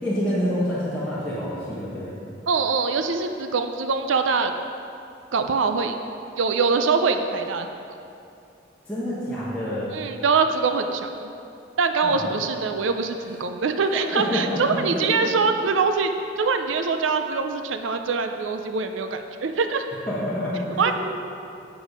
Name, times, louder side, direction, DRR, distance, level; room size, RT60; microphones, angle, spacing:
voice 1, 0.0-2.1 8.9-9.9 12.0-12.3 13.9-15.3 20.1-20.9, equal, 5° left, -12 dB, 1.5 m, -27 dB
voice 2, 2.5-4.5 5.3-6.0 6.4-7.7 9.9-11.3 11.8-16.1 16.4-19.8 20.8-20.9, right 4 dB, 90° right, 7 dB, 0.5 m, -23 dB
9.1 x 6.9 x 5.1 m, 2.6 s
head